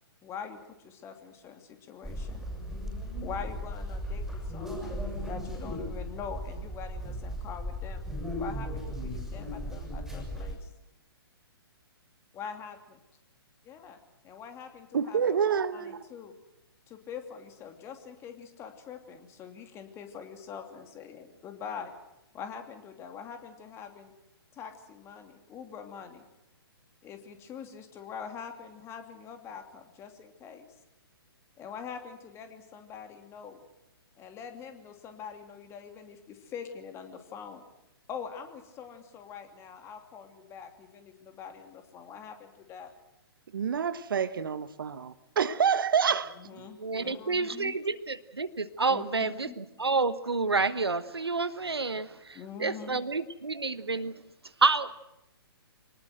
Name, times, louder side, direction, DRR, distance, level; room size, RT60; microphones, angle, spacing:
voice 1, 0.2-2.4 3.2-8.0 8.4-10.7 12.3-12.8 13.6-14.0 14.2-15.4 15.7-16.3 16.9-21.9 22.3-24.1 24.5-26.2 27.0-30.7 31.6-33.6 34.2-37.6 38.1-42.9 46.4-47.8 48.9-49.6 52.3-53.0, left 7 dB, 20° left, 2.7 m, -44 dB
sound 1, 2.0-10.6, equal, ahead, 6.8 m, -36 dB
voice 2, 14.9-16.1 43.5-46.7, right 7 dB, 60° right, 1.1 m, -28 dB
voice 3, 46.8-54.2 54.6-54.9, right 4 dB, 80° right, 1.2 m, -29 dB
25.0 x 19.5 x 7.9 m
figure-of-eight pair, 125°, 13 cm